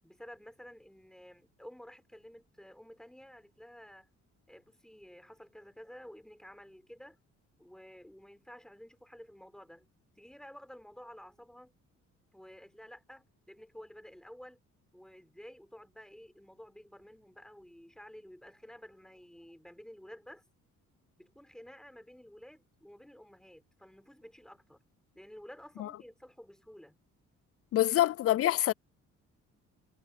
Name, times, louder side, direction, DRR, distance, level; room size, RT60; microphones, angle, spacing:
voice 1, 0.0-4.1 4.5-7.2 7.6-9.9 10.2-11.8 12.3-14.6 14.9-20.4 21.2-24.8 25.1-27.0 28.5-28.6, equal, ahead, 4.3 m, -52 dB
voice 2, 27.7-28.7, left 14 dB, 50° left, 0.4 m, -26 dB
cardioid pair, 90°, 30 cm